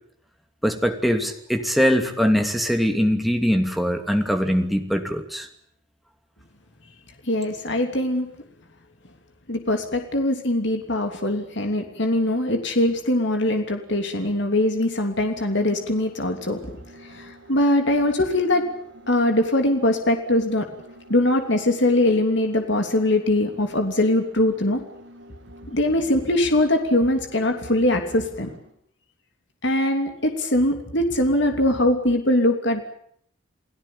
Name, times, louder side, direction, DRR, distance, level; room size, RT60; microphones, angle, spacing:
voice 1, 0.6-5.5, equal, ahead, 4 dB, 2.7 m, -22 dB
voice 2, 7.2-8.3 9.5-16.8 17.0-18.7 19.1-20.7 21.1-24.8 25.7-28.5 29.6-32.8, left 1 dB, 60° left, 5 dB, 3.1 m, -22 dB
sound 1, 15.2-28.7, equal, 65° right, 6.9 m, -47 dB
29.5 x 17.5 x 8.7 m, 0.69 s
head